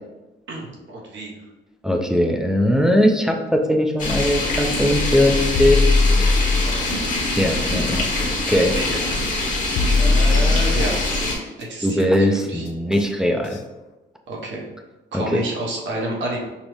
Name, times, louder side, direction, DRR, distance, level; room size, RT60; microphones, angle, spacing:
voice 1, 0.5-1.3 6.6-7.1 8.7-9.7 10.0-11.1 11.6-12.7 14.3-14.6 15.1-16.4, right 2 dB, 70° right, -2 dB, 1.0 m, -30 dB
voice 2, 1.8-5.9 7.4-8.1 8.5-9.1 11.8-13.6 15.1-15.4, left 1 dB, 5° right, 3 dB, 0.4 m, -20 dB
sound 1, 4.0-11.4, left 2 dB, 40° left, 1.0 m, -24 dB
sound 2, 5.5-6.8 8.7-8.8 9.8-11.1 12.9-13.0 13.5-13.6, left 3 dB, 65° left, 0.4 m, -19 dB
5.3 x 2.0 x 3.1 m, 1.1 s
cardioid pair, 90°, 20 cm